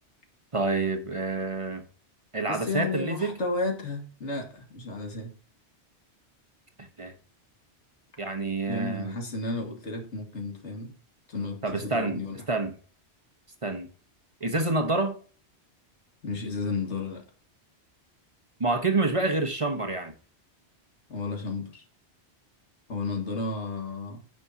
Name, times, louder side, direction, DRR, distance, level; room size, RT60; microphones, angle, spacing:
voice 1, 0.5-1.8 2.3-3.4 6.8-7.1 8.2-9.1 11.6-12.2 12.5-12.7 13.6-13.9 14.4-15.2 18.6-20.1, right 3 dB, 30° right, 1.0 m, -27 dB
voice 2, 2.5-5.3 8.6-10.9 11.3-12.4 16.2-17.2 21.1-21.8 22.9-24.2, left 3 dB, 90° left, 2.2 m, -32 dB
9.8 x 6.5 x 2.8 m
omnidirectional pair, 1.2 m